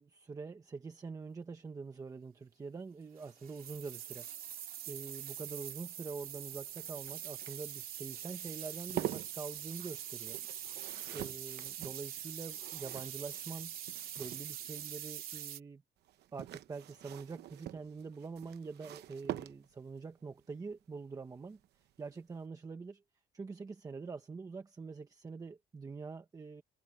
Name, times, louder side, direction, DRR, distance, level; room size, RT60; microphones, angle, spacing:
voice 1, 0.0-4.3 4.5-10.4 11.1-13.7 14.2-15.8 16.3-23.0 23.3-26.6, right 4 dB, 20° right, 1.2 m, -45 dB
sound 1, 3.2-15.6, right 10 dB, 60° right, 2.7 m, -44 dB
sound 2, 6.1-14.9 16.0-20.0 21.6-21.9 22.2-22.3, right 13 dB, 80° right, 0.9 m, -46 dB
cardioid pair, 170°, 17 cm